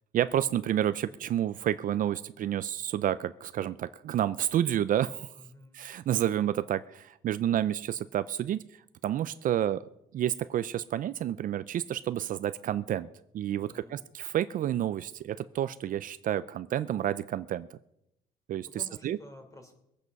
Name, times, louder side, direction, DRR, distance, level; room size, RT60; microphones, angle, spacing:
voice 1, 0.1-5.3 5.7-8.6 9.0-9.8 10.1-17.8 18.5-18.7 19.0-19.2, right 11 dB, 55° right, 14 dB, 0.5 m, -30 dB
voice 2, 5.4-5.8 13.6-14.0 18.6-19.7, left 1 dB, 20° left, 5 dB, 3.5 m, -51 dB
22.0 x 8.3 x 5.4 m, 0.82 s
cardioid pair, 110°, 17 cm